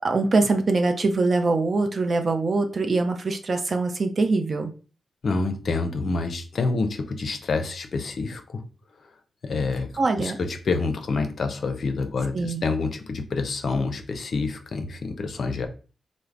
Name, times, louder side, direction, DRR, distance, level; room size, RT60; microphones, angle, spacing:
voice 1, 0.0-4.7 10.0-10.4 12.3-12.7, right 3 dB, 50° right, 0.5 m, -23 dB
voice 2, 5.2-8.6 9.4-9.9 10.2-15.7, left 3 dB, 65° left, 0.4 m, -27 dB
3.1 x 2.0 x 2.4 m
supercardioid pair, 50°, 0 cm